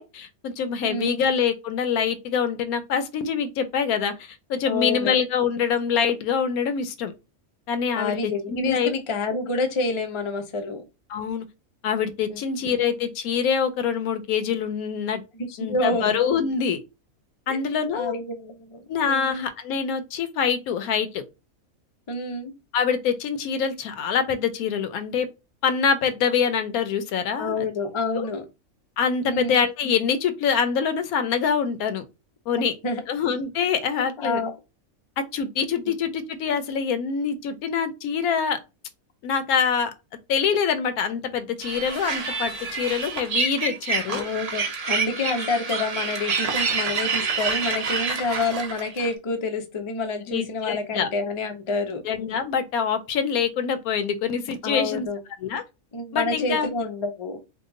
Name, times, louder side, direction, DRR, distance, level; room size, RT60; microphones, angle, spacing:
voice 1, 0.0-7.1 7.7-8.9 11.1-11.5 11.8-15.2 15.6-16.8 17.5-18.1 18.9-21.2 22.7-25.3 25.6-27.7 28.1-28.3 29.0-32.0 32.5-32.7 33.1-34.4 35.2-38.6 39.2-39.9 40.3-44.2 50.3-51.1 52.0-55.1 55.4-55.6 56.1-56.7, left 6 dB, 85° left, 1.1 m, -25 dB
voice 2, 0.8-1.2 4.7-5.1 7.9-10.8 12.3-12.4 15.3-16.1 17.5-17.6 17.9-19.5 22.1-22.5 27.4-28.4 29.2-29.6 32.8-33.0 33.9-34.5 35.9-36.0 44.1-52.0 54.6-55.2 55.9-57.4, left 3 dB, 50° left, 0.3 m, -28 dB
sound 1, 41.6-49.1, right 4 dB, 55° right, 0.4 m, -27 dB
2.8 x 2.2 x 3.6 m
omnidirectional pair, 1.5 m